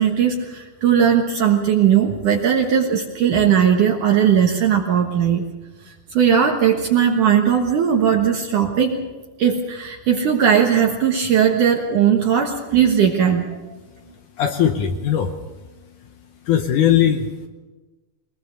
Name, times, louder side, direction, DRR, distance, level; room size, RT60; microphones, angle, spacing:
voice 1, 0.0-5.4 5.8-9.0 9.4-13.5, right 8 dB, 60° right, 1 dB, 2.5 m, -18 dB
voice 2, 14.4-15.3 16.5-17.3, left 9 dB, 70° left, 7 dB, 2.0 m, -18 dB
22.5 x 20.5 x 6.7 m, 1.2 s
omnidirectional pair, 4.6 m